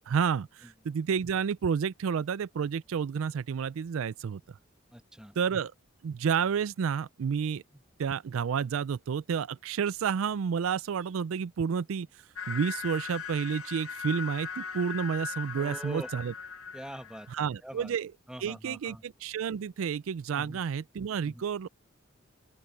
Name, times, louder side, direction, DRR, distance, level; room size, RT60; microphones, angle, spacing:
voice 1, 0.1-4.4 5.4-5.7 6.0-7.6 8.0-16.3 17.3-18.1 18.4-21.7, right 7 dB, 75° right, 0.4 m, -30 dB
voice 2, 4.9-5.3 7.7-7.8 15.6-16.1 16.7-17.9 18.3-19.0 20.4-20.6 21.2-21.4, equal, 5° right, 1.4 m, -43 dB
sound 1, 12.4-17.4, left 6 dB, 85° left, 1.8 m, -39 dB
open air
head